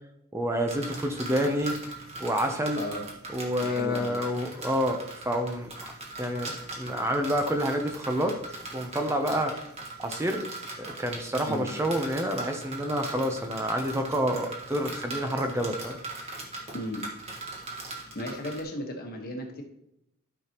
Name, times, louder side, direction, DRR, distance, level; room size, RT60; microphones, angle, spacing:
voice 1, 0.3-1.9 2.2-2.8 3.3-8.4 8.7-9.5 10.0-10.4 10.8-16.0, equal, 15° right, 4 dB, 0.6 m, -28 dB
sound 1, 0.7-18.6, right 2 dB, 30° right, 1.5 m, -40 dB
voice 2, 2.8-3.1 3.6-4.1 11.5-11.7 16.7-17.1 18.1-19.6, left 1 dB, 50° left, 3 dB, 1.3 m, -35 dB
12.5 x 5.9 x 3.0 m, 0.79 s
head